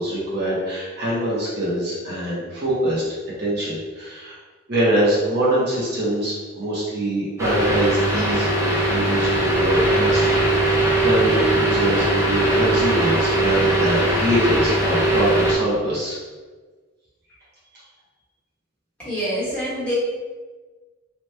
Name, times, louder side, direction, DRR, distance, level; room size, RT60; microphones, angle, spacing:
voice 1, 0.0-3.0 3.4-4.3 4.7-16.2, right 1 dB, 50° right, -7 dB, 0.8 m, -24 dB
sound 1, 7.4-15.5, right 1 dB, 15° right, 0.4 m, -20 dB
voice 2, 19.0-19.9, equal, 5° left, -11 dB, 1.1 m, -26 dB
2.9 x 2.2 x 3.2 m, 1.4 s
head